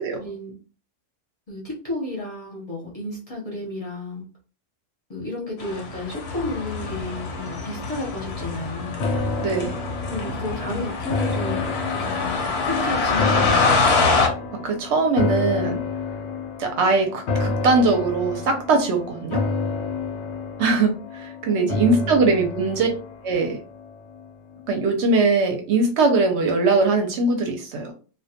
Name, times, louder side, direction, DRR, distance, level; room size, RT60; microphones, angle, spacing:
voice 1, 0.2-0.5 1.5-4.2 5.1-9.0 10.1-11.7 12.0-13.9 21.6-22.3, left 2 dB, 35° left, -4 dB, 0.7 m, -32 dB
sound 1, 5.6-14.3, left 4 dB, 65° left, 0.8 m, -25 dB
sound 2, 9.0-24.3 24.7-24.8, left 3 dB, 85° left, 1.0 m, -29 dB
voice 2, 9.4-9.8 14.6-15.8 16.6-19.4 20.6-22.9 23.2-23.6 24.7-27.9, right 3 dB, 70° right, 3 dB, 0.8 m, -21 dB
2.3 x 2.1 x 2.7 m, 0.36 s
omnidirectional pair, 1.3 m